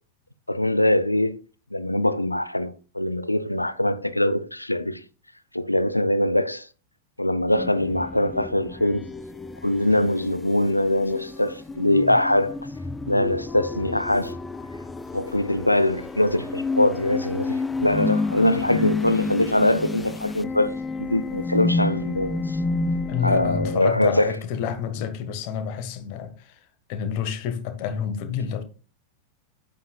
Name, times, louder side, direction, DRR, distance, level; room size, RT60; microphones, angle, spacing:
voice 1, 0.5-1.4 1.7-5.0 5.5-6.7 7.2-9.1 9.6-12.6 13.1-14.3 15.1-20.7 21.0-22.6 23.2-24.3, left 1 dB, 85° left, 0.5 m, -22 dB
sound 1, 7.5-23.8, left 3 dB, 10° left, 0.6 m, -30 dB
voice 2, 23.1-28.6, left 7 dB, 45° left, 1.4 m, -29 dB
9.1 x 9.0 x 2.3 m
figure-of-eight pair, 90°, 0 cm